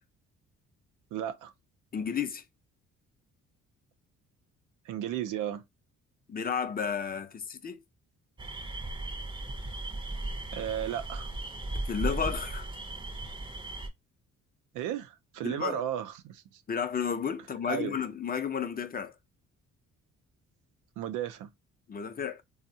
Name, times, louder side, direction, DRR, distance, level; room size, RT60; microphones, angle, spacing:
voice 1, 1.1-1.5 4.9-5.6 10.5-11.3 14.7-16.6 17.7-17.9 21.0-21.5, right 10 dB, 90° right, 0.5 m, -34 dB
voice 2, 1.9-2.4 6.3-7.8 11.7-12.7 15.4-15.8 16.7-19.1 21.9-22.4, left 7 dB, 30° left, 0.5 m, -32 dB
sound 1, 8.4-13.9, right 2 dB, 15° right, 0.5 m, -36 dB
3.4 x 2.1 x 2.7 m
cardioid pair, 90°, 30 cm